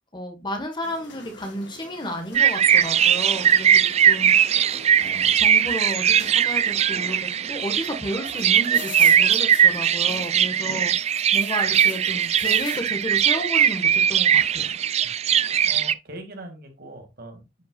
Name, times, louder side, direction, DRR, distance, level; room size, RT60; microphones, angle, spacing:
voice 1, 0.1-4.3 4.9-14.7, equal, 25° left, 4 dB, 1.4 m, -32 dB
sound 1, 0.8-10.5 10.8-12.9, left 6 dB, 75° left, 1.9 m, -44 dB
sound 2, 2.3-15.9, right 9 dB, 35° right, 0.3 m, -20 dB
voice 2, 15.0-17.6, right 1 dB, 55° right, 5 dB, 2.3 m, -42 dB
10.5 x 5.7 x 2.4 m, 0.23 s
head